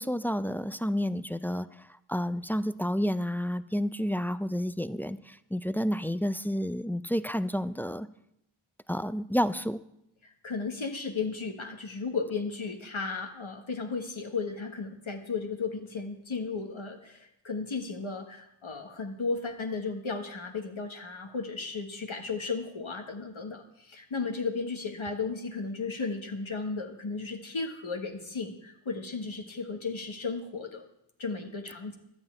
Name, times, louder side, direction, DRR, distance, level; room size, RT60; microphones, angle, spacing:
voice 1, 0.0-8.1 8.9-9.8, equal, 5° left, 14 dB, 0.3 m, -30 dB
voice 2, 10.4-30.8 31.2-32.0, left 4 dB, 70° left, 3 dB, 1.4 m, -35 dB
11.5 x 5.7 x 8.9 m, 0.80 s
wide cardioid pair, 60°, 50 cm